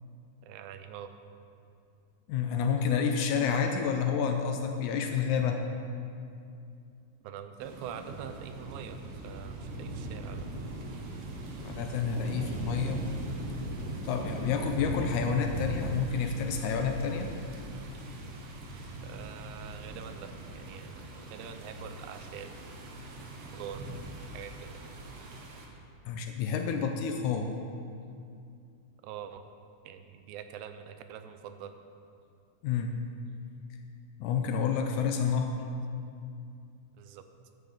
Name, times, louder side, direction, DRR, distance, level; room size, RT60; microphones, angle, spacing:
voice 1, 0.4-1.1 7.2-10.5 19.0-22.5 23.5-23.9 24.3-24.8 29.0-29.4 29.8-31.8 37.0-37.2, right 8 dB, 85° right, 8 dB, 2.4 m, -44 dB
voice 2, 2.3-5.6 11.6-13.0 14.0-17.3 26.1-27.5 32.6-33.0 34.2-35.6, left 6 dB, 80° left, 5 dB, 1.8 m, -29 dB
sound 1, 7.6-25.7, right 1 dB, 65° right, 1.5 m, -40 dB
13.0 x 9.8 x 3.9 m, 2.4 s
omnidirectional pair, 4.0 m